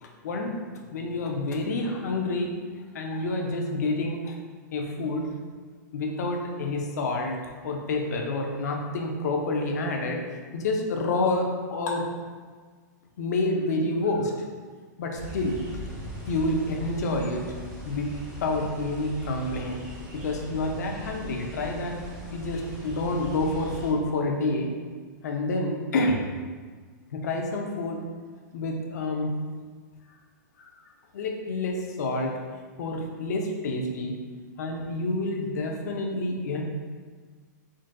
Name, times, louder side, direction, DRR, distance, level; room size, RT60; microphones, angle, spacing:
voice 1, 0.0-2.5 2.9-4.3 4.7-5.3 5.9-7.4 7.6-10.2 10.5-12.1 13.2-14.3 15.0-15.6 16.3-17.4 17.8-19.8 20.1-22.0 22.3-24.7 25.2-26.2 27.1-28.0 28.5-29.3 30.6-30.7 31.1-32.4 32.8-34.2 34.6-36.6, left 2 dB, 60° left, 2 dB, 0.6 m, -28 dB
sound 1, 15.1-23.9, right 1 dB, 10° right, 0.9 m, -40 dB
3.8 x 3.7 x 2.2 m, 1.6 s
supercardioid pair, 175°, 10 cm